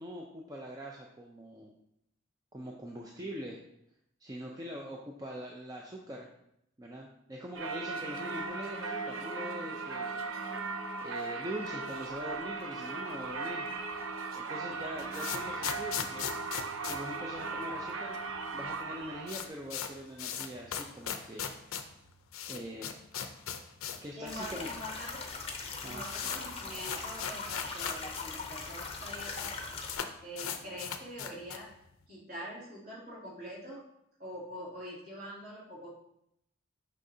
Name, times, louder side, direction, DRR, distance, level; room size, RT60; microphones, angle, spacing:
voice 1, 0.0-1.7 2.5-3.6 4.2-6.3 6.8-10.7 11.0-13.7 14.3-16.3 16.8-21.9 22.5-22.9 24.0-24.7 25.8-26.0, equal, 20° right, -1 dB, 0.4 m, -43 dB
Singing / Church bell, 7.5-19.5, right 4 dB, 75° right, 0.6 m, -38 dB
sound 1, 14.7-18.0 18.2-18.3 18.6-18.7 19.0-24.1 24.4-24.5 25.2-25.3 25.6-28.2 28.5-28.6 28.8-29.5 29.9-31.7, left 8 dB, 85° left, 0.5 m, -38 dB
voice 2, 24.2-25.3 25.8-29.5 30.2-31.7 32.1-33.9 34.2-36.0, equal, 50° right, -6 dB, 2.5 m, -44 dB
sound 2, 24.3-30.0, left 4 dB, 30° left, 0.6 m, -40 dB
6.2 x 5.6 x 2.7 m, 0.78 s
head